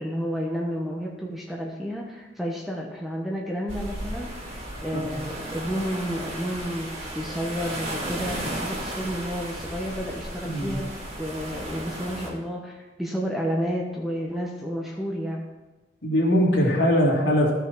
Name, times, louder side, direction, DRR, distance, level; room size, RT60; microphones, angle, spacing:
voice 1, 0.0-4.5 4.8-15.4, equal, ahead, -2 dB, 1.0 m, -31 dB
sound 1, 3.7-12.3, right 1 dB, 35° right, 2.2 m, -35 dB
voice 2, 10.4-10.8 16.0-17.5, equal, 75° left, -4 dB, 2.8 m, -21 dB
13.5 x 5.9 x 4.7 m, 1.1 s
head